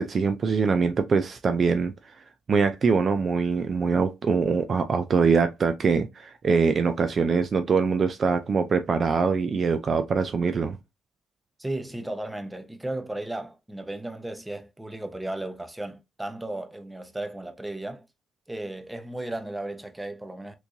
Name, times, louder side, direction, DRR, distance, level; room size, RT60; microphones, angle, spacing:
voice 1, 0.0-1.9 2.5-10.8, right 5 dB, 45° right, 0.4 m, -23 dB
voice 2, 11.6-18.0 18.5-20.5, right 1 dB, 10° right, 0.8 m, -35 dB
3.3 x 3.1 x 2.6 m
cardioid pair, 90°, 0 cm